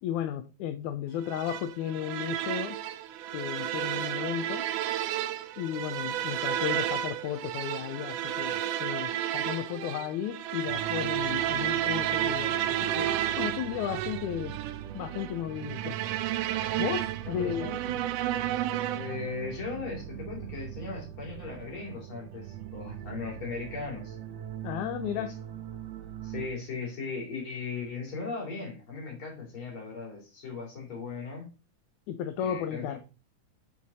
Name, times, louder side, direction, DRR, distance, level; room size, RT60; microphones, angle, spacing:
voice 1, 0.0-2.8 3.3-4.7 5.6-14.6 14.9-16.0 16.8-17.7 24.6-25.3 32.1-33.0, left 10 dB, 80° left, 8 dB, 2.0 m, -34 dB
sound 1, 1.3-19.3, right 12 dB, 90° right, 2.2 m, -32 dB
sound 2, 10.7-26.5, right 11 dB, 70° right, 1.8 m, -41 dB
voice 2, 17.3-18.0 18.9-24.2 25.1-25.3 26.2-31.5 32.4-33.0, left 4 dB, 40° left, -1 dB, 3.6 m, -38 dB
8.5 x 4.6 x 4.0 m, 0.32 s
omnidirectional pair, 3.6 m